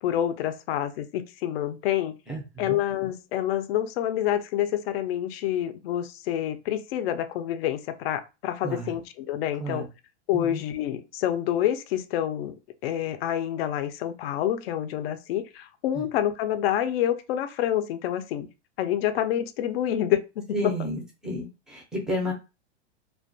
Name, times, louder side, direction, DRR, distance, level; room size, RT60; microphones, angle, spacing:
voice 1, 0.0-2.1 2.6-9.9 10.3-12.6 12.8-18.5 18.8-20.6, left 11 dB, 55° left, 0.4 m, -27 dB
voice 2, 2.3-2.8 8.6-8.9 9.6-9.9 10.3-10.6 15.9-16.1 20.5-22.3, equal, ahead, 0.4 m, -32 dB
2.2 x 2.2 x 2.5 m
hypercardioid pair, 140°, 35 cm